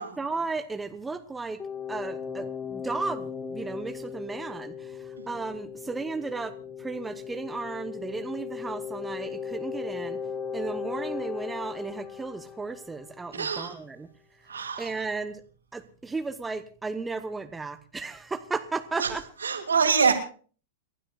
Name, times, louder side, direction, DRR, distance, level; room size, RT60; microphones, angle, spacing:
voice 1, 0.0-1.6 1.9-10.2 10.5-14.1 14.8-15.4 15.7-19.2, right 4 dB, 10° right, 10 dB, 0.9 m, -34 dB
sound 1, 1.6-13.2, left 6 dB, 20° left, 1.5 m, -37 dB
voice 2, 13.3-13.7 14.5-14.9 19.0-19.1 19.4-20.1, right 5 dB, 80° right, 5 dB, 2.7 m, -24 dB
29.0 x 12.5 x 2.4 m, 0.41 s
figure-of-eight pair, 100°, 0 cm